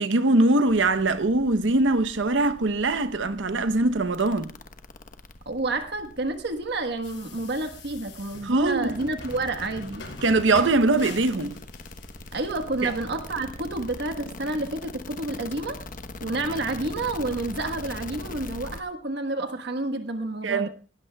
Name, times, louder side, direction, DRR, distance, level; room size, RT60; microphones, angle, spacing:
voice 1, 0.0-4.5 8.4-8.9 10.2-11.6 12.8-12.9 20.4-20.7, right 2 dB, 85° right, 0.9 m, -22 dB
sound 1, 0.7-18.8, left 2 dB, 50° left, 1.1 m, -42 dB
voice 2, 5.4-10.1 12.3-15.8 16.2-20.7, right 2 dB, 65° right, 1.4 m, -29 dB
sound 2, 7.0-14.2, left 2 dB, 85° left, 6.5 m, -44 dB
19.0 x 18.5 x 2.3 m
head